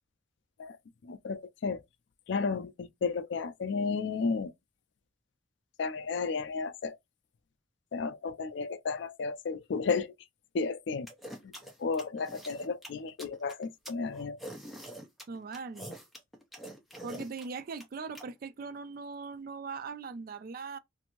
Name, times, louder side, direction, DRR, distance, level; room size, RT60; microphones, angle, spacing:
voice 1, 1.0-1.8 2.3-4.5 5.8-7.0 7.9-10.1 10.5-11.1 11.4-11.5 11.8-14.4, left 4 dB, 60° left, 0.3 m, -33 dB
sound 1, 11.1-18.2, right 1 dB, ahead, 0.6 m, -45 dB
voice 2, 15.3-15.9 17.0-20.8, right 4 dB, 45° right, 0.3 m, -40 dB
2.6 x 2.5 x 2.9 m
head